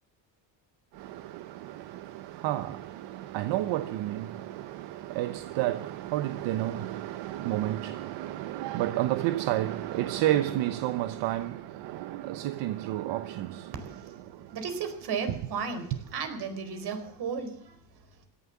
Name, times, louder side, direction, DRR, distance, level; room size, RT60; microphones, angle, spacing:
voice 1, 2.4-2.8 3.3-4.3 5.2-11.5 11.9-13.5, right 14 dB, 85° right, 1.0 m, -29 dB
voice 2, 14.5-17.8, right 6 dB, 65° right, 4.3 m, -34 dB
17.0 x 11.5 x 7.2 m
cardioid pair, 105°, 42 cm